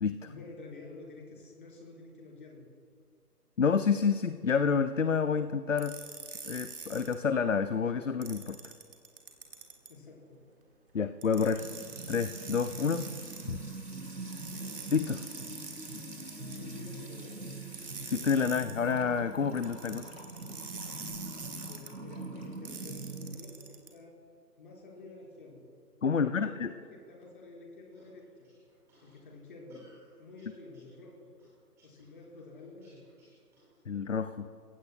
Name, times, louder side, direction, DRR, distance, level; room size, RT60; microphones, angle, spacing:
voice 1, 0.3-2.7 9.9-10.4 16.5-17.6 21.6-24.1 24.6-25.6 26.1-28.5 29.0-29.8 30.2-31.3 31.8-33.0, left 3 dB, 30° left, -2 dB, 4.2 m, -49 dB
voice 2, 3.6-6.0 6.5-8.6 10.9-11.6 12.1-13.1 13.5-13.6 14.9-15.2 18.1-20.1 26.0-26.7 33.9-34.5, left 6 dB, 50° left, 11 dB, 0.5 m, -28 dB
sound 1, 5.8-7.1 8.2-9.9 11.2-13.4 14.3-16.6 17.7-18.7 19.6-21.9 22.6-23.9, right 5 dB, 35° right, 1.5 m, -45 dB
Music / Water tap faucet / Trickle dribble, 11.6-23.4, right 2 dB, 80° right, 3.6 m, -43 dB
sound 2, 27.9-33.9, left 1 dB, 5° right, 2.3 m, -60 dB
30.0 x 16.0 x 2.3 m, 2.3 s
figure-of-eight pair, 150°, 48 cm